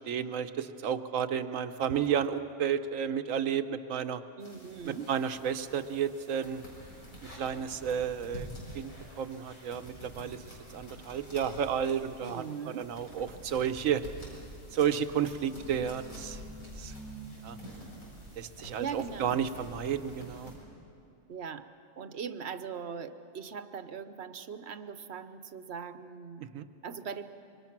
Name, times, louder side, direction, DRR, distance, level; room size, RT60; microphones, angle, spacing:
voice 1, 0.0-4.2 4.8-6.6 7.3-8.5 8.7-12.4 12.8-14.0 14.7-16.4 16.8-16.9 17.4-17.6 18.4-20.5 26.4-26.7, right 8 dB, 80° right, 10 dB, 1.2 m, -32 dB
sound 1, 4.4-20.6, equal, 80° left, 6.8 m, -47 dB
voice 2, 4.4-5.1 12.2-12.9 18.8-19.5 21.3-21.7 22.0-26.5 26.8-27.3, right 6 dB, 55° right, 11 dB, 1.1 m, -40 dB
26.5 x 24.0 x 5.9 m, 2.7 s
omnidirectional pair, 1.4 m